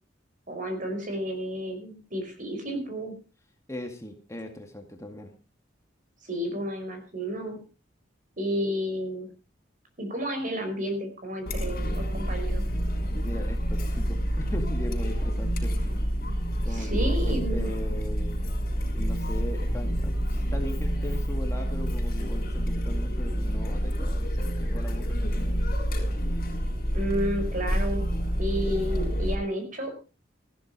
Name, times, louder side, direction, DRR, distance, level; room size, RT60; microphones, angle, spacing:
voice 1, 0.5-3.2 6.2-7.6 8.4-9.3 10.0-12.6 16.7-17.7 26.9-28.0 28.4-29.9, equal, 45° right, 5 dB, 5.1 m, -31 dB
voice 2, 3.7-5.3 13.2-15.8 16.6-18.5 18.9-25.2, left 1 dB, 15° left, 4 dB, 2.0 m, -39 dB
Chatter, 11.5-29.4, equal, 55° left, 5.9 m, -28 dB
14.5 x 13.0 x 4.8 m, 0.34 s
head